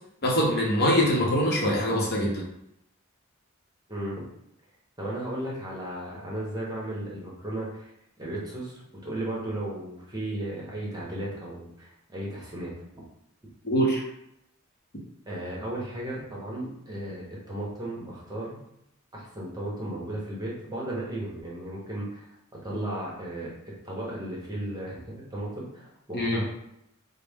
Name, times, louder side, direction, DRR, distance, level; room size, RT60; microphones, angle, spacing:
voice 1, 0.2-2.4 13.6-14.0 26.1-26.4, equal, 50° left, -3 dB, 0.8 m, -23 dB
voice 2, 3.9-4.2 5.0-7.9 8.2-13.0 15.3-18.6 19.1-22.3 22.6-23.6 23.8-26.5, right 1 dB, 20° right, -4 dB, 0.9 m, -35 dB
4.0 x 2.1 x 3.5 m, 0.79 s
head